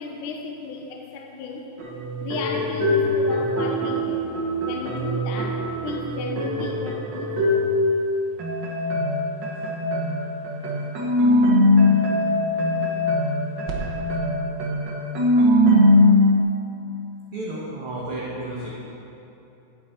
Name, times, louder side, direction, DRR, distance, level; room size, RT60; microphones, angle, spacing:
voice 1, 0.0-1.7 2.2-4.3 4.6-7.7, left 4 dB, 80° left, 2 dB, 2.4 m, -34 dB
sound 1, 1.8-8.0 8.4-16.4, left 1 dB, 75° right, 1.0 m, -21 dB
voice 2, 17.3-18.7, right 1 dB, 55° right, -6 dB, 1.7 m, -32 dB
11.5 x 8.4 x 4.5 m, 2.9 s
omnidirectional pair, 3.7 m